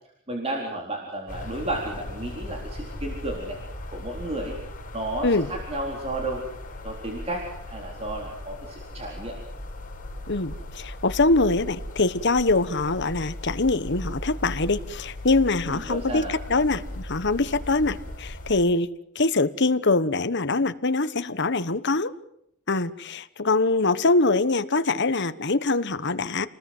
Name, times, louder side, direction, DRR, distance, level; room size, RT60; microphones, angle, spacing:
voice 1, 0.3-3.6 3.9-4.6 4.9-6.4 6.8-9.4 15.6-16.3, right 1 dB, 30° right, 0 dB, 4.1 m, -32 dB
sound 1, 1.3-18.5, left 1 dB, 40° left, 6.1 m, -38 dB
voice 2, 10.3-18.9 19.1-22.1 22.7-26.5, left 3 dB, 55° left, 12 dB, 1.3 m, -23 dB
29.5 x 20.0 x 7.9 m, 0.74 s
head